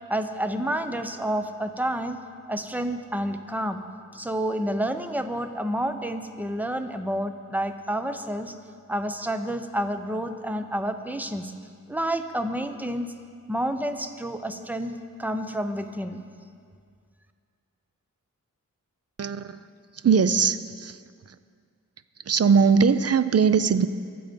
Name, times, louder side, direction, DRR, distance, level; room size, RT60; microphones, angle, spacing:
voice 1, 0.1-2.2 2.5-3.8 4.1-8.5 8.9-11.5 11.9-13.1 13.5-16.2, right 1 dB, 5° right, 8 dB, 0.7 m, -29 dB
voice 2, 19.2-19.6 19.9-21.0 21.3-21.4 22.3-23.9, right 6 dB, 50° right, 13 dB, 0.6 m, -20 dB
22.5 x 7.8 x 5.2 m, 2.2 s
wide cardioid pair, 110°, 32 cm